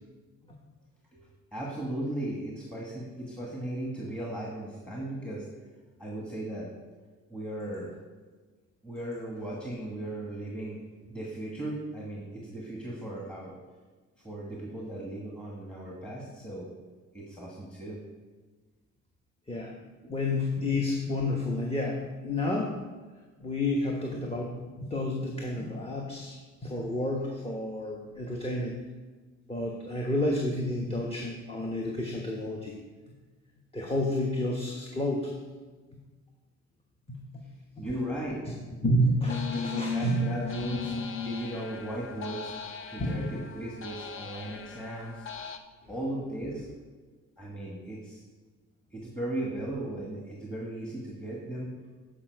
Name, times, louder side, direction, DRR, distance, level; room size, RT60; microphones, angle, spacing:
voice 1, 1.1-5.4 6.0-6.7 7.3-7.9 8.8-10.8 11.1-13.5 14.2-16.7 17.1-18.0 20.0-20.2 37.8-38.4 39.5-42.5 42.9-45.2 45.9-46.7 47.4-48.2 48.9-51.7, right 1 dB, 5° left, -4 dB, 1.5 m, -37 dB
voice 2, 20.1-22.8 23.4-28.8 29.5-32.7 33.7-35.3 37.1-37.5 38.8-40.2 43.0-43.2, left 1 dB, 20° left, -1 dB, 1.1 m, -30 dB
sound 1, 39.3-45.6, left 5 dB, 45° left, 0.7 m, -37 dB
8.6 x 5.1 x 4.6 m, 1.3 s
cardioid pair, 90°, 30 cm